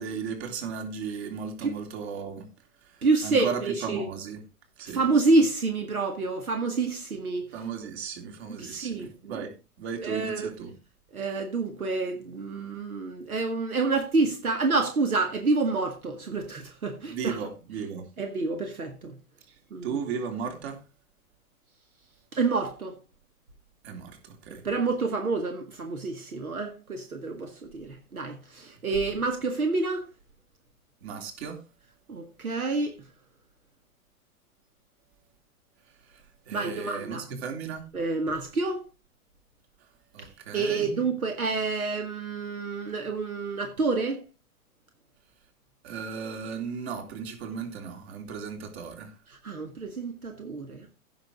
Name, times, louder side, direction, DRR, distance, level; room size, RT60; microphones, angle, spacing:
voice 1, 0.0-2.5 2.8-4.4 4.8-5.0 7.5-10.7 17.0-18.1 19.5-19.6 19.8-20.8 23.8-24.6 31.0-31.6 36.0-37.9 40.1-41.0 45.8-49.1, right 6 dB, 45° right, 3.1 m, -36 dB
voice 2, 3.0-4.1 4.9-7.5 8.6-9.4 10.0-10.5 11.1-17.4 18.2-19.2 19.7-20.0 22.3-23.0 24.6-30.1 32.1-33.0 36.5-37.4 37.9-38.8 40.2-40.3 40.5-44.2 49.3-50.9, right 3 dB, 75° right, 2.0 m, -28 dB
16.0 x 6.4 x 3.7 m
figure-of-eight pair, 110°, 44 cm